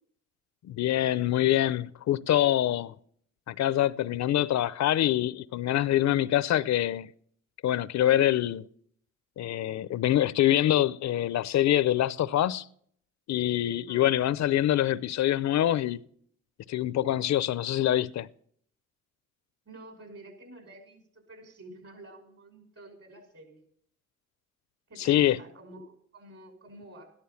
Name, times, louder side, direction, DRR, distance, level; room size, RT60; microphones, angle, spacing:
voice 1, 0.7-2.9 3.5-7.1 7.6-8.7 9.4-12.7 13.3-16.0 16.7-18.3 25.0-25.4, left 12 dB, 65° left, 0.6 m, -25 dB
voice 2, 13.9-14.2 19.7-23.6 24.9-27.1, right 1 dB, 55° right, 6.1 m, -49 dB
14.0 x 11.5 x 5.8 m
cardioid pair, 90°, 30 cm